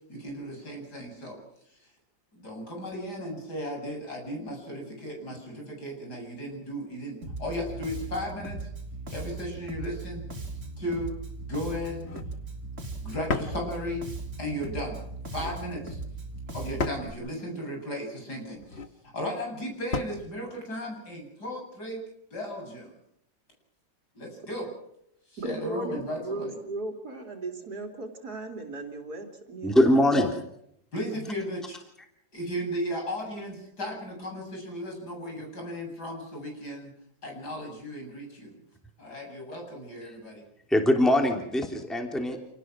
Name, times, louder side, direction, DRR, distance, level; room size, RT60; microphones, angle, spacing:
voice 1, 0.1-1.4 2.3-8.7 9.1-10.3 10.8-11.2 11.5-12.1 13.0-14.1 14.4-15.0 15.3-16.0 16.5-18.8 19.0-22.0 22.3-22.9 24.1-24.7 25.3-26.6 30.9-31.8 32.3-36.9 37.2-38.6 39.0-40.4, equal, 60° left, 1 dB, 8.6 m, -35 dB
Bass guitar, 7.2-17.1, right 2 dB, 40° right, 3.5 m, -38 dB
sound 1, 11.9-12.3 13.3-13.6 15.2-15.6 16.8-17.2 18.5-19.0 19.9-20.2, left 3 dB, 40° left, 1.6 m, -33 dB
voice 2, 25.4-30.0, right 2 dB, 60° right, 4 dB, 3.6 m, -36 dB
voice 3, 29.6-30.4 40.7-42.4, left 1 dB, ahead, 3 dB, 3.0 m, -22 dB
28.5 x 19.5 x 6.2 m, 0.76 s
omnidirectional pair, 1.9 m